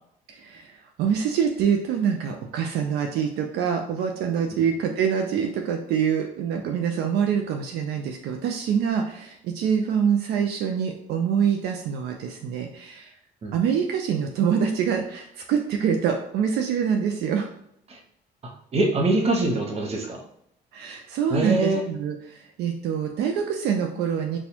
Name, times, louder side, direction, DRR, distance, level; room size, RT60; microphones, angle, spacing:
voice 1, 0.3-13.1 13.5-17.5 20.7-24.4, right 7 dB, 75° right, 3 dB, 0.4 m, -25 dB
voice 2, 18.7-20.2 21.3-21.8, right 2 dB, 35° right, 1 dB, 0.8 m, -23 dB
4.1 x 2.3 x 2.8 m, 0.72 s
cardioid pair, 110°, 17 cm